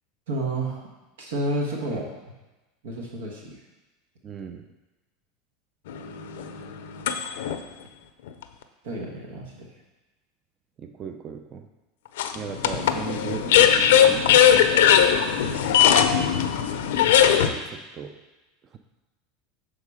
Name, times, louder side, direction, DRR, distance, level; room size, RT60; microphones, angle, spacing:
voice 1, 0.3-0.9 1.2-2.0 2.8-3.5 8.8-9.7, right 1 dB, 85° right, -1 dB, 1.3 m, -30 dB
voice 2, 4.2-4.7 10.8-11.7 12.3-14.5 17.5-18.2 18.7-18.8, right 6 dB, 30° right, 6 dB, 0.4 m, -37 dB
sound 1, 5.9-7.6 8.3-8.4 12.2-17.5, left 9 dB, 85° left, 0.5 m, -19 dB
6.7 x 3.8 x 4.8 m, 1.1 s
supercardioid pair, 130°, 0 cm